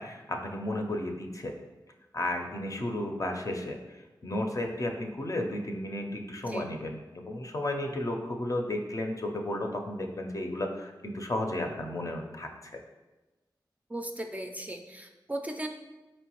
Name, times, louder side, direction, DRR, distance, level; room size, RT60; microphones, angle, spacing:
voice 1, 0.0-1.5 2.1-12.8, left 1 dB, 45° left, 2 dB, 0.5 m, -33 dB
voice 2, 13.9-15.7, right 1 dB, 20° right, 3 dB, 0.4 m, -37 dB
4.4 x 3.0 x 3.0 m, 1.1 s
cardioid pair, 45°, 8 cm